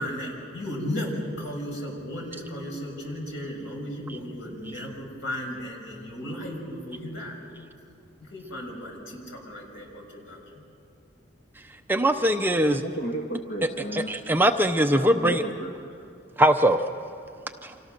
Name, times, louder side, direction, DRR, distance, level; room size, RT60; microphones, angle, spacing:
voice 1, 0.0-7.4 8.2-10.6, equal, 80° left, 0 dB, 6.2 m, -35 dB
voice 2, 11.9-12.8 13.9-15.4 16.4-16.8 17.6-17.7, right 1 dB, 10° right, 6 dB, 0.6 m, -21 dB
voice 3, 12.5-14.2 14.9-15.8, right 1 dB, 55° left, 0 dB, 1.8 m, -33 dB
30.0 x 26.0 x 6.6 m, 2.5 s
head